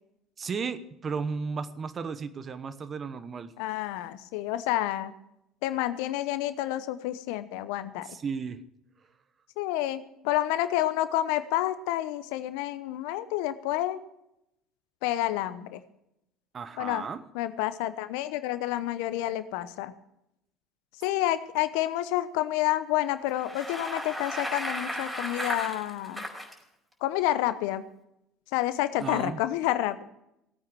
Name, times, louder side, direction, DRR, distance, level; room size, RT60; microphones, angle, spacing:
voice 1, 0.4-3.5 8.0-8.6 16.5-17.2 29.0-29.4, right 5 dB, 35° right, 13 dB, 1.1 m, -34 dB
voice 2, 3.6-5.1 5.6-8.1 9.6-14.0 15.0-15.8 16.8-17.0 17.3-19.9 21.0-26.2 27.0-27.8 28.5-30.0, left 14 dB, 70° left, 13 dB, 0.9 m, -29 dB
Bicycle, 23.3-26.5, equal, 10° right, 4.9 m, -35 dB
18.0 x 8.9 x 6.2 m, 0.82 s
hypercardioid pair, 70°, 0 cm